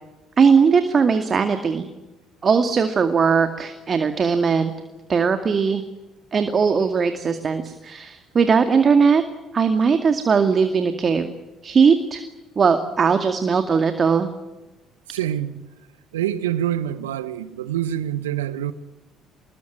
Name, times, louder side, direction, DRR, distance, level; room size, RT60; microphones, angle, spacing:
voice 1, 0.4-1.9 2.4-4.7 5.1-5.8 6.3-9.2 9.5-11.3 11.6-12.2 12.6-14.3, right 5 dB, 40° right, 2.2 m, -19 dB
voice 2, 15.1-15.7 16.1-18.7, right 11 dB, 80° right, 1.2 m, -26 dB
26.5 x 21.5 x 9.6 m
figure-of-eight pair, 50°, 0 cm